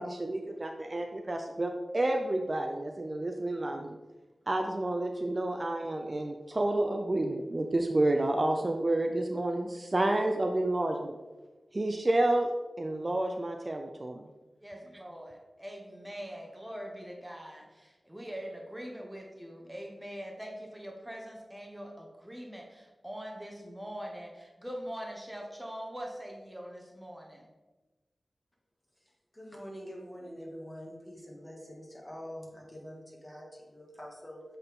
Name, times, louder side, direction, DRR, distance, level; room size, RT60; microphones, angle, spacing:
voice 1, 0.0-4.0 4.5-11.2 11.7-12.5 12.8-14.3, right 1 dB, 35° right, 4 dB, 0.5 m, -30 dB
voice 2, 14.6-15.3 15.6-17.6 18.1-22.6 23.0-24.3 24.6-27.2, equal, 10° right, 0 dB, 1.0 m, -42 dB
voice 3, 29.3-34.4, equal, 20° left, -2 dB, 1.7 m, -45 dB
7.8 x 4.1 x 3.6 m, 1.2 s
wide cardioid pair, 65°, 0 cm